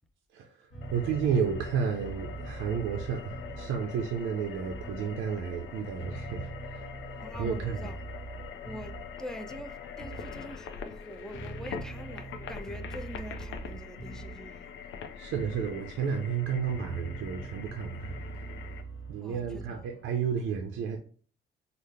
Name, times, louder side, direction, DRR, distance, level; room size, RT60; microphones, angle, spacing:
voice 1, 0.3-6.9 7.4-7.9 15.2-18.2 19.1-21.0, right 7 dB, 85° right, 0.5 m, -32 dB
sound 1, 0.7-20.0, right 3 dB, 60° left, 1.0 m, -44 dB
sound 2, 0.8-18.8, left 7 dB, 85° left, 0.5 m, -44 dB
voice 2, 7.2-8.0 8.6-14.8 19.2-19.8, equal, 5° left, 0.4 m, -44 dB
3.9 x 2.0 x 3.2 m
cardioid pair, 90°, 20 cm